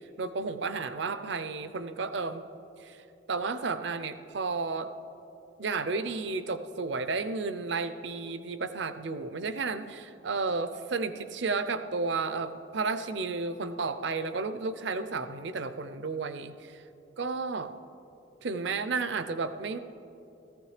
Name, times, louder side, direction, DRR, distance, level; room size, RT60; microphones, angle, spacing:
voice 1, 0.2-2.4 2.9-3.0 3.3-4.9 5.6-16.8 17.2-17.7 18.4-19.8, right 4 dB, 65° right, 10 dB, 0.6 m, -32 dB
17.5 x 14.5 x 3.3 m, 3.0 s
head